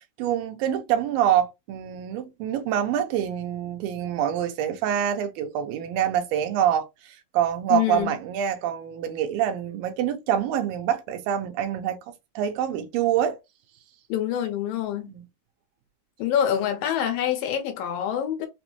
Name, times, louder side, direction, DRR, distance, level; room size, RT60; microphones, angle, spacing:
voice 1, 0.0-12.0 12.4-13.4 15.1-15.2, right 10 dB, 80° right, 2.3 m, -26 dB
voice 2, 7.7-8.1 14.1-15.1 16.2-18.5, left 10 dB, 80° left, 2.4 m, -26 dB
6.0 x 2.1 x 3.0 m
omnidirectional pair, 4.3 m